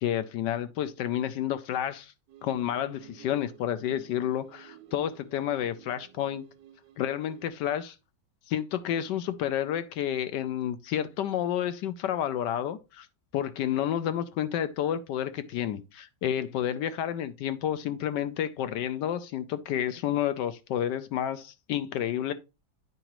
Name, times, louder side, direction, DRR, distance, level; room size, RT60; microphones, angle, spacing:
voice 1, 0.0-2.1 2.4-6.5 7.0-8.0 8.5-13.1 13.3-22.3, left 10 dB, 75° left, 1.2 m, -30 dB
sound 1, 2.3-7.5, right 11 dB, 70° right, 1.4 m, -53 dB
9.1 x 4.9 x 3.0 m
omnidirectional pair, 2.0 m